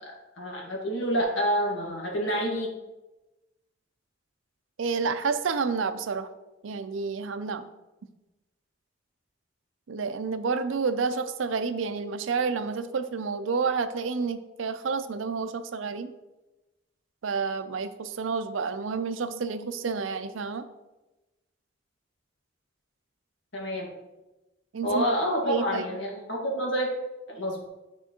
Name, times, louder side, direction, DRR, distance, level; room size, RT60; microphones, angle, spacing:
voice 1, 0.0-2.7 23.5-23.9 24.8-26.9 27.3-27.7, equal, 75° left, -2 dB, 1.6 m, -28 dB
voice 2, 4.8-6.3 6.6-7.6 9.9-16.1 17.2-20.7 24.7-25.1 25.4-25.9, right 5 dB, 80° right, 10 dB, 0.5 m, -29 dB
9.4 x 4.4 x 2.9 m, 1.0 s
head